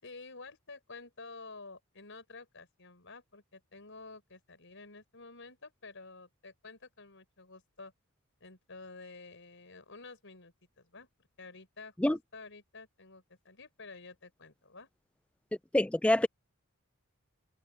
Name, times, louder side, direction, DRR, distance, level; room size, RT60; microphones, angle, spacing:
voice 1, 0.0-7.9 8.4-11.1 11.4-14.9, left 3 dB, 60° left, 5.6 m, -50 dB
voice 2, 15.7-16.3, left 1 dB, 5° left, 0.3 m, -25 dB
head